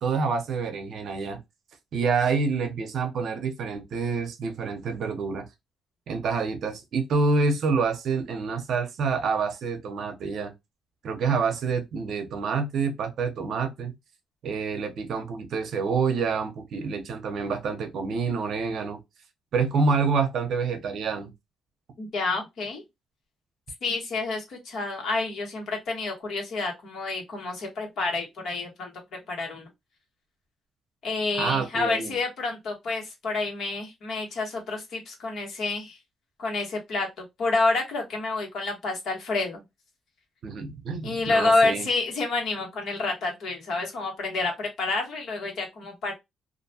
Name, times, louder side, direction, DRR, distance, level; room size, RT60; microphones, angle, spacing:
voice 1, 0.0-1.4 1.9-5.5 6.1-10.5 11.0-13.9 14.4-19.0 19.5-21.3 31.4-32.2 40.4-41.9, right 4 dB, 65° right, 0.7 m, -27 dB
voice 2, 22.0-22.8 23.8-28.9 29.3-29.7 31.0-36.0 36.4-39.6 41.0-46.1, left 3 dB, 65° left, 1.3 m, -28 dB
2.5 x 2.2 x 2.7 m
cardioid pair, 90°, 0 cm